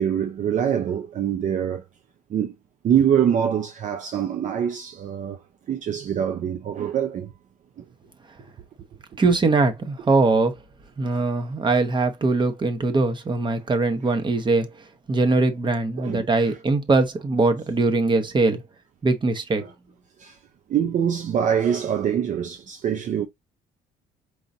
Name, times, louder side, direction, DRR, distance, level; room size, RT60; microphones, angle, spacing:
voice 1, 0.0-1.8 2.3-2.5 2.8-5.4 5.7-7.3 16.0-16.5 20.2-20.4 20.7-23.3, right 9 dB, 50° right, 0.6 m, -24 dB
voice 2, 9.2-10.5 11.0-14.7 15.1-18.6 19.0-19.7, right 3 dB, 25° right, 1.1 m, -21 dB
4.8 x 3.9 x 2.7 m
cardioid pair, 110°, 17 cm